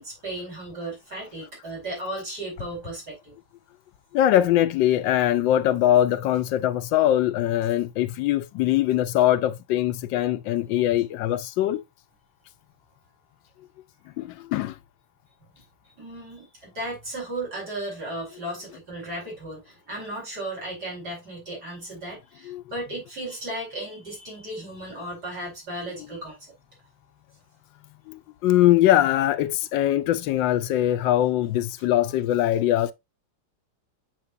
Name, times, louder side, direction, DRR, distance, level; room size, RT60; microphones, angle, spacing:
voice 1, 0.0-3.3 15.5-15.6 16.0-26.5, right 1 dB, 55° right, 5.0 m, -35 dB
voice 2, 4.1-11.8 14.2-14.8 22.5-22.6 28.1-32.9, left 13 dB, 85° left, 1.3 m, -22 dB
7.5 x 5.9 x 2.6 m
omnidirectional pair, 2.0 m